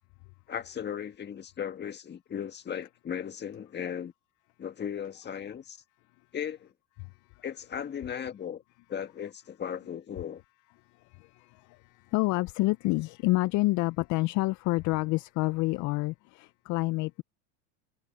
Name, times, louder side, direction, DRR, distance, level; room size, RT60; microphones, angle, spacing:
voice 1, 0.5-4.1 4.6-5.8 6.3-6.7 7.4-8.6 8.9-10.4, left 8 dB, 25° left, 1.7 m, -36 dB
voice 2, 7.0-7.4 11.0-17.2, left 21 dB, 50° left, 0.6 m, -29 dB
supercardioid pair, 110°, 38 cm